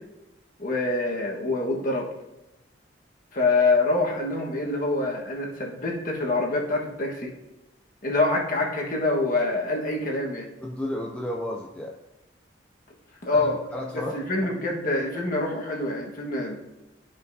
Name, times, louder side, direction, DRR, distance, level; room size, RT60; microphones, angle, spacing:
voice 1, 0.6-2.0 3.3-7.3 8.0-10.5 13.2-13.6 13.9-16.6, left 2 dB, 45° left, -2 dB, 1.4 m, -25 dB
voice 2, 10.6-11.9 13.3-14.1, left 1 dB, 5° left, -1 dB, 0.5 m, -32 dB
11.5 x 5.2 x 2.7 m, 0.97 s
head